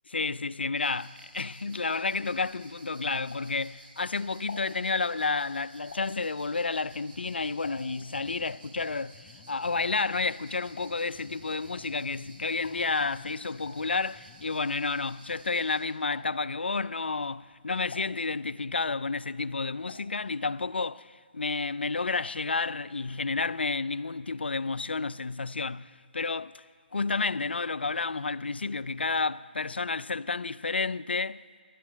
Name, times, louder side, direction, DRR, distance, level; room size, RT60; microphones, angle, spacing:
voice 1, 0.1-26.6 26.9-31.6, left 4 dB, 85° left, 0.3 m, -31 dB
sound 1, 0.7-15.8, right 2 dB, 60° right, 3.2 m, -54 dB
sound 2, 1.3-3.9 4.2-8.2 8.4-15.7 16.0-16.6 17.1-18.8 19.1-20.2 20.4-20.5 20.8-20.9, left 4 dB, 50° left, 1.6 m, -49 dB
sound 3, 7.0-14.7, left 10 dB, 25° left, 0.7 m, -56 dB
11.5 x 7.2 x 8.6 m
figure-of-eight pair, 145°, 6 cm